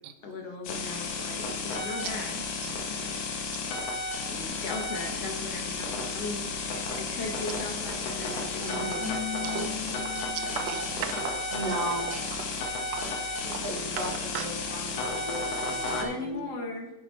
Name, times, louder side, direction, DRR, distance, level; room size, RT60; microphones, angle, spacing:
voice 1, 0.2-2.4 2.9-3.2 4.3-9.6 10.4-10.6 15.8-16.9, left 3 dB, 60° left, 2 dB, 2.2 m, -38 dB
sound 1, 0.6-16.0, left 3 dB, 75° left, 2.7 m, -33 dB
voice 2, 3.5-3.9 8.6-8.8 9.4-9.9 10.3-11.4 12.1-12.4 14.0-14.5 15.2-15.4, right 10 dB, 85° right, 9 dB, 2.2 m, -39 dB
Walk footsteps, 7.6-7.9 8.2-14.3, right 6 dB, 65° right, 1.9 m, -41 dB
voice 3, 8.6-9.2 11.5-12.1 13.4-16.5, right 1 dB, 40° right, -5 dB, 3.2 m, -36 dB
Keyboard (musical), 9.0-11.0, left 13 dB, 30° left, 3.6 m, -38 dB
10.0 x 7.6 x 4.1 m, 0.92 s
omnidirectional pair, 3.5 m